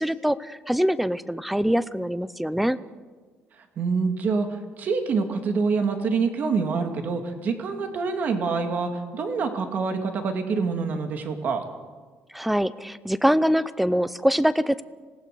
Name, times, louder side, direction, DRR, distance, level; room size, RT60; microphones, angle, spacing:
voice 1, 0.0-2.8 12.3-14.8, equal, ahead, 16 dB, 0.6 m, -23 dB
voice 2, 3.8-11.6, right 4 dB, 45° right, 6 dB, 2.3 m, -26 dB
26.0 x 19.0 x 6.7 m, 1.4 s
cardioid pair, 170°, 4 cm